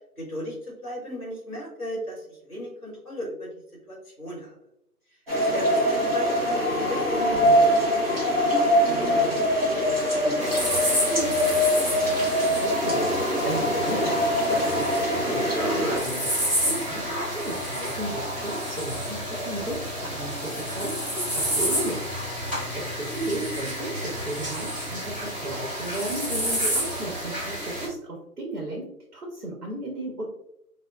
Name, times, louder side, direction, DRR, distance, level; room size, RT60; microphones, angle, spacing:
voice 1, 0.2-3.5 3.9-4.5 5.4-7.8 8.1-8.6 9.7-11.4 22.9-23.1, equal, 25° left, -3 dB, 0.8 m, -36 dB
sound 1, 5.3-16.0, equal, 40° right, 0.8 m, -23 dB
sound 2, 10.4-27.9, equal, 20° right, 1.2 m, -30 dB
voice 2, 12.6-22.1 22.4-28.9 29.1-30.2, right 1 dB, 65° right, -2 dB, 1.0 m, -34 dB
3.9 x 2.1 x 2.3 m, 0.79 s
figure-of-eight pair, 160°, 47 cm